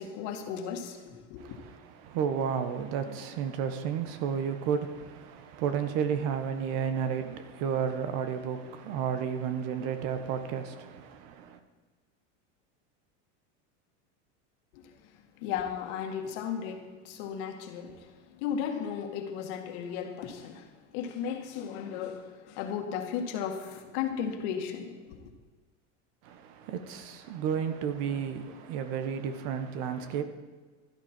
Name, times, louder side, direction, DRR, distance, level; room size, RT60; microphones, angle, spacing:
voice 1, 0.0-1.6 14.7-25.3, left 8 dB, 65° left, 2.1 m, -35 dB
voice 2, 1.4-11.6 26.2-30.2, right 7 dB, 60° right, 1.5 m, -32 dB
16.0 x 12.0 x 4.5 m
supercardioid pair, 135°, 36 cm